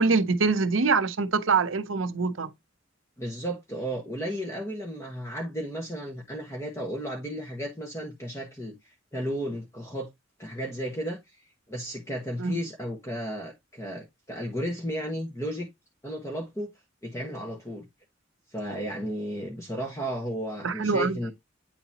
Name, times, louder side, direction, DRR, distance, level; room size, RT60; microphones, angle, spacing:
voice 1, 0.0-2.5 12.4-12.6 20.6-21.2, right 4 dB, 80° right, 0.7 m, -24 dB
voice 2, 3.2-8.8 9.1-10.1 10.4-11.2 11.7-15.7 16.0-16.7 17.0-17.9 18.5-21.3, equal, 15° left, 1.3 m, -33 dB
8.7 x 3.9 x 2.8 m
head